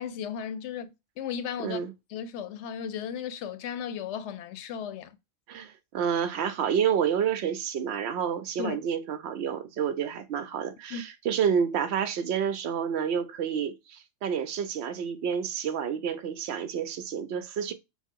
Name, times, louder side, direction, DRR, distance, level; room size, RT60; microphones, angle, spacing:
voice 1, 0.0-1.8 2.1-5.2 8.6-8.8 10.9-11.1, left 7 dB, 85° left, 0.9 m, -35 dB
voice 2, 5.5-17.7, right 8 dB, 75° right, 0.9 m, -29 dB
6.1 x 2.1 x 3.6 m
omnidirectional pair, 1.1 m